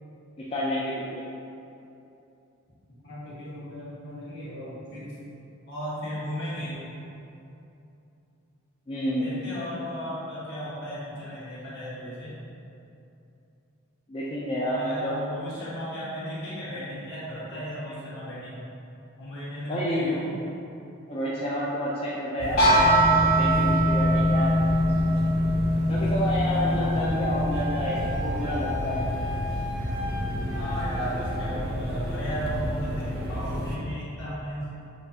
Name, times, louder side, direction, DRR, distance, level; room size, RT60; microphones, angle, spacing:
voice 1, 0.4-1.2 8.9-9.3 14.1-15.1 19.7-20.1 21.1-24.5 25.9-29.0, equal, 25° left, -7 dB, 0.4 m, -29 dB
voice 2, 3.0-5.1 5.7-6.8 9.2-12.4 14.5-18.6 19.2-20.3 27.0-27.3 30.5-34.9, equal, 60° left, -10 dB, 1.4 m, -35 dB
sound 1, 22.4-33.8, equal, 45° right, 0.4 m, -31 dB
sound 2, 22.6-28.4, equal, 90° left, 0.8 m, -23 dB
Wind instrument woodwind instrument, 26.5-31.5, left 3 dB, 70° right, 0.8 m, -37 dB
5.4 x 2.5 x 2.7 m, 2.8 s
head